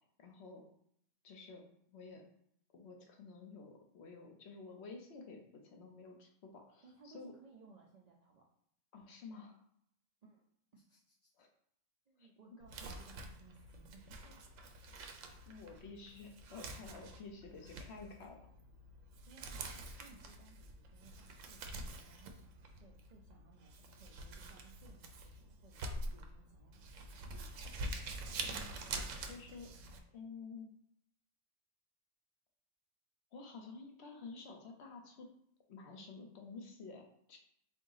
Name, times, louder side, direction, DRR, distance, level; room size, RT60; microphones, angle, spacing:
voice 1, 0.2-0.6 1.2-2.2 2.7-7.3 8.9-9.6 11.4-11.5 12.2-12.3 14.2-14.3 15.5-18.4 28.3-29.7 30.1-30.7 33.3-35.3 35.7-37.4, left 4 dB, 65° left, 3 dB, 0.9 m, -51 dB
voice 2, 6.8-8.5 10.2-10.4 10.7-11.3 12.1-14.1 19.3-27.0, right 4 dB, 55° right, -3 dB, 0.4 m, -62 dB
Crumpling crinkling, 12.6-30.0, right 2 dB, 80° right, 0.9 m, -46 dB
3.7 x 2.4 x 3.9 m, 0.73 s
omnidirectional pair, 1.3 m